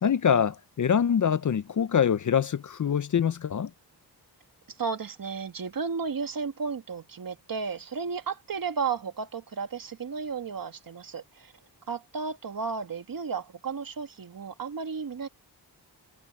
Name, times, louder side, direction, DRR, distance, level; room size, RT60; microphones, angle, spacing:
voice 1, 0.0-3.7, left 8 dB, 50° left, 0.6 m, -24 dB
voice 2, 4.7-11.5 11.9-15.3, right 5 dB, 55° right, 1.7 m, -33 dB
wide cardioid pair, 155°, 40 cm